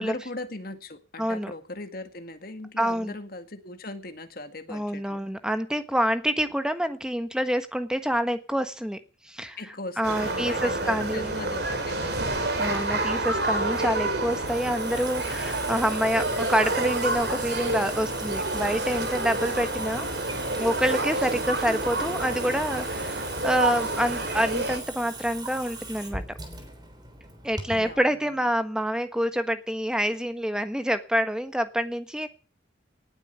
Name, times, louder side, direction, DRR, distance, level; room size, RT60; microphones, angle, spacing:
voice 1, 0.0-5.2 9.6-12.6 27.7-28.4, left 2 dB, 50° left, 8 dB, 2.0 m, -39 dB
voice 2, 1.2-1.5 2.8-3.1 4.7-9.0 9.2-9.6 10.0-11.3 12.6-20.1 20.6-26.2 27.4-32.3, equal, 5° right, 9 dB, 1.3 m, -27 dB
sound 1, 10.0-24.8, right 2 dB, 55° right, 3.6 m, -29 dB
Water tap faucet / Sink (filling or washing) / Drip, 12.0-28.0, right 3 dB, 20° right, 3.5 m, -40 dB
18.5 x 8.9 x 8.1 m, 0.38 s
head